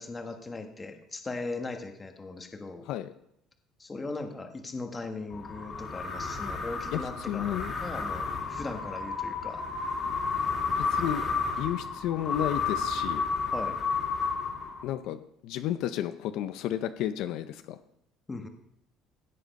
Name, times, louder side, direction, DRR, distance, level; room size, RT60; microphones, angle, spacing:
voice 1, 0.0-2.8 3.8-9.6 13.5-13.8 18.3-18.5, left 3 dB, 15° left, 5 dB, 1.3 m, -38 dB
sound 1, 5.3-15.0, left 5 dB, 30° left, 2.3 m, -32 dB
voice 2, 6.9-7.7 8.3-8.4 10.7-11.3 11.6-13.2 14.8-17.8, left 11 dB, 65° left, 10 dB, 0.6 m, -32 dB
16.5 x 7.9 x 5.3 m, 0.77 s
cardioid pair, 165°, 0 cm